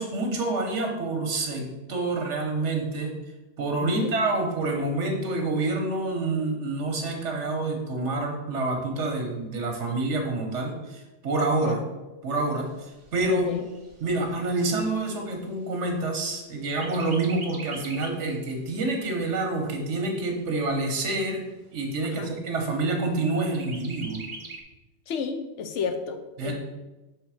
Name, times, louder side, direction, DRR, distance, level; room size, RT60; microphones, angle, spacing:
voice 1, 0.0-3.1 3.6-11.8 12.2-12.7 13.1-13.5 14.0-21.4 21.7-24.2 26.4-26.5, right 2 dB, 75° right, 2 dB, 1.4 m, -27 dB
Chirp tweet, 12.5-16.2 16.6-18.3 18.7-18.8 19.2-20.2 20.8-20.9 21.2-21.3 21.8-22.3 23.5-24.6, right 3 dB, 35° right, 0.6 m, -43 dB
voice 2, 13.3-13.6 22.0-22.3 25.1-26.5, left 6 dB, 80° left, 7 dB, 1.0 m, -31 dB
6.3 x 3.3 x 4.9 m, 1.1 s
omnidirectional pair, 1.2 m